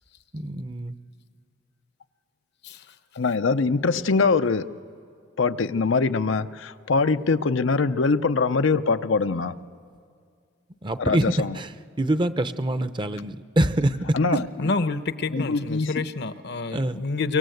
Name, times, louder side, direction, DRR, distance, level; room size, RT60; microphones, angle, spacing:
voice 1, 0.3-0.9 10.8-11.2 11.6-11.7 12.0-14.0 15.4-15.5 16.7-17.0, right 1 dB, 25° right, 11 dB, 0.7 m, -25 dB
voice 2, 3.2-4.7 5.4-9.6 11.0-11.6 14.1-14.7 15.3-15.9, left 4 dB, 90° left, 9 dB, 0.7 m, -23 dB
voice 3, 14.6-17.4, left 3 dB, 65° left, 12 dB, 0.9 m, -28 dB
24.5 x 24.0 x 7.9 m, 2.2 s
head